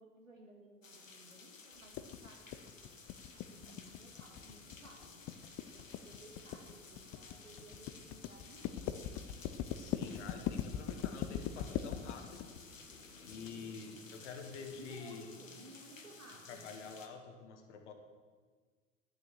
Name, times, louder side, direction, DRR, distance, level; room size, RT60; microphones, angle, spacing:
voice 1, 0.0-3.0 3.3-5.2 5.6-8.8 14.8-16.8, right 2 dB, 90° right, -1 dB, 2.3 m, -57 dB
sound 1, 0.8-17.1, left 4 dB, 85° left, 1.1 m, -55 dB
sound 2, 1.9-13.5, left 10 dB, 35° left, 0.6 m, -40 dB
voice 2, 9.8-12.5 13.2-15.3 16.5-17.9, left 5 dB, 65° left, 5 dB, 1.6 m, -48 dB
10.5 x 7.1 x 7.4 m, 1.5 s
figure-of-eight pair, 75°, 38 cm